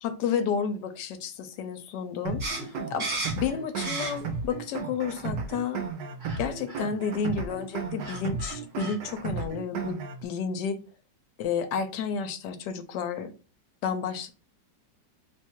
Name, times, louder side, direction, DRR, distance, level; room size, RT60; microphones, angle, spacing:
voice 1, 0.0-3.1 3.4-5.9 6.4-10.0 10.2-10.8 11.4-13.3 13.8-14.3, left 6 dB, 75° left, 8 dB, 1.1 m, -31 dB
sound 1, 2.3-10.3, right 4 dB, 75° right, 1.2 m, -34 dB
sound 2, 2.4-4.5 4.8-5.6 6.2-6.4 6.7-6.8 7.7-7.8 8.0-9.0, right 3 dB, 40° right, 1.3 m, -35 dB
3.0 x 2.3 x 4.3 m, 0.33 s
omnidirectional pair, 2.0 m